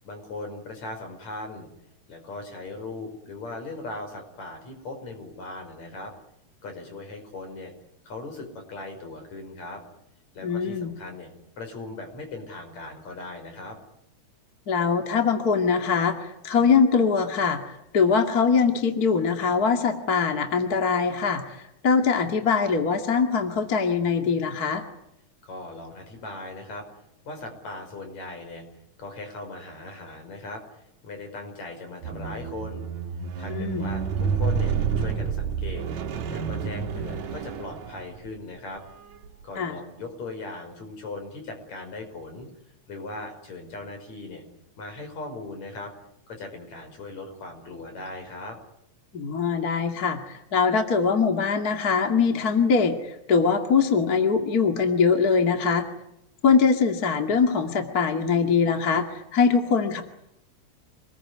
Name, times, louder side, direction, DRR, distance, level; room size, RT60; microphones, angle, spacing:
voice 1, 0.0-1.7 2.1-6.1 6.6-7.7 8.0-9.8 10.3-11.3 11.6-13.8 25.4-26.9 27.3-28.6 29.0-32.9 33.4-35.9 36.3-38.8 39.4-42.5 42.9-44.4 44.8-45.9 46.3-48.6, left 2 dB, 65° left, 5 dB, 6.7 m, -39 dB
voice 2, 10.4-10.9 14.7-21.6 21.8-24.8 33.5-33.9 39.6-39.7 49.1-55.9 56.4-60.0, left 5 dB, 35° left, 5 dB, 2.5 m, -22 dB
Squeak, 32.0-38.4 39.1-39.3, right 6 dB, 70° right, 2.9 m, -29 dB
28.0 x 20.5 x 9.8 m, 0.82 s
omnidirectional pair, 3.4 m